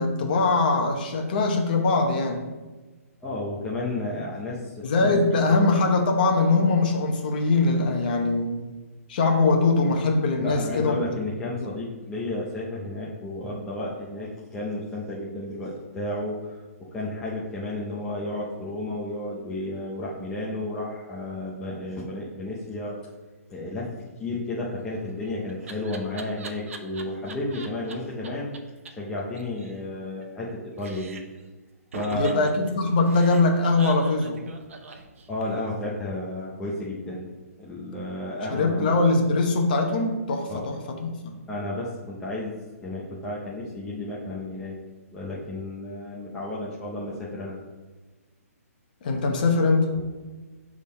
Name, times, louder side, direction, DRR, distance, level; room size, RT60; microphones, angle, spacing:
voice 1, 0.0-2.5 4.8-8.6 9.1-11.0 11.6-11.7 32.1-34.4 38.5-41.4 49.0-50.0, left 3 dB, 35° left, 3 dB, 0.9 m, -22 dB
voice 2, 3.2-5.7 10.4-23.0 23.5-23.9 24.2-28.5 29.0-31.2 31.9-32.5 35.3-37.3 37.6-39.0 40.5-40.6 41.5-44.8 45.1-47.5, left 1 dB, 5° left, -6 dB, 0.5 m, -32 dB
Laughter, 24.8-27.9 28.2-28.3 28.5-28.6 28.9-29.0 29.2-30.5 30.8-31.4 31.9-35.7, right 4 dB, 60° right, 0.8 m, -41 dB
6.4 x 3.6 x 5.3 m, 1.3 s
hypercardioid pair, 170°, 8 cm